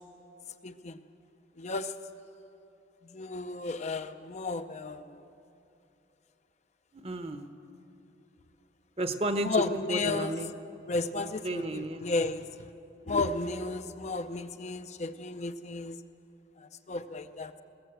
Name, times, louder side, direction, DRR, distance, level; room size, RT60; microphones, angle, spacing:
voice 1, 0.6-1.0 1.6-1.9 3.1-5.2 9.4-10.4 10.9-12.5 13.1-16.0 16.6-17.5, left 3 dB, 35° left, 9 dB, 0.5 m, -33 dB
voice 2, 6.9-7.5 9.0-9.6 9.9-10.5 11.2-12.1, right 2 dB, 30° right, 9 dB, 0.9 m, -33 dB
20.5 x 16.0 x 7.9 m, 2.8 s
head